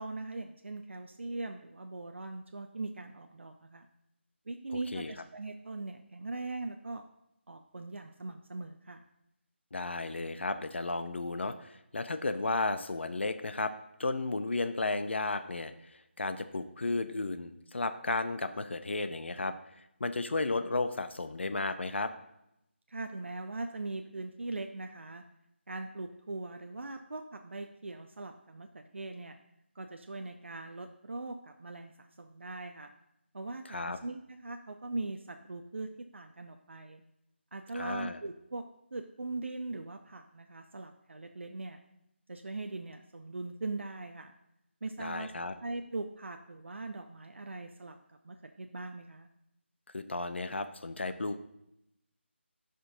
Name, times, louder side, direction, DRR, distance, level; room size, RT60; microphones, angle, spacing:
voice 1, 0.0-3.9 4.5-7.0 7.5-9.0 22.9-25.2 25.7-29.3 29.8-32.9 33.3-37.0 37.5-38.6 38.9-41.8 42.3-44.3 44.8-45.3 45.6-48.0 48.2-49.3, right 2 dB, 70° right, 5 dB, 0.5 m, -40 dB
voice 2, 9.7-13.7 14.0-15.7 16.2-19.6 20.0-22.1 33.7-34.0 37.7-38.2 45.0-45.5 49.9-51.4, left 3 dB, 65° left, 10 dB, 0.6 m, -33 dB
13.5 x 5.2 x 2.6 m, 0.83 s
figure-of-eight pair, 160°, 7 cm